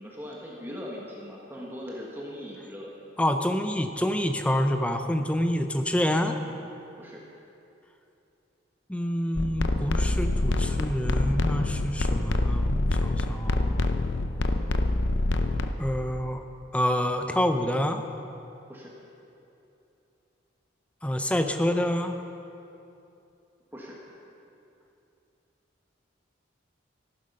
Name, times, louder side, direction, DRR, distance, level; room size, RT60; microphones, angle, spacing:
voice 1, 0.0-2.9 7.0-7.2 18.7-18.9 23.7-24.0, equal, 10° right, -4 dB, 1.3 m, -40 dB
voice 2, 3.2-6.4 8.9-13.9 15.8-16.4 16.7-18.0 21.0-22.2, equal, 5° left, 6 dB, 0.6 m, -27 dB
sound 1, 9.4-15.7, left 2 dB, 75° left, 0.7 m, -26 dB
14.5 x 11.5 x 5.4 m, 2.8 s
head